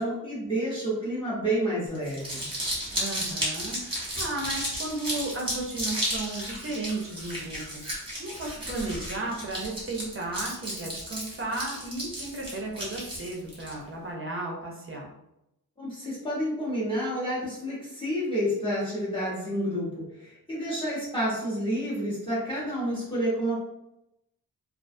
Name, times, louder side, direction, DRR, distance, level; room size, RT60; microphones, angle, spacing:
voice 1, 0.0-2.5 15.8-23.6, equal, 15° left, -7 dB, 0.8 m, -29 dB
Crumpling crinkling, 1.9-13.7, equal, 15° right, 0.9 m, -33 dB
voice 2, 2.9-15.1, right 2 dB, 35° right, -1 dB, 0.5 m, -34 dB
2.4 x 2.2 x 2.5 m, 0.85 s
wide cardioid pair, 145°, 37 cm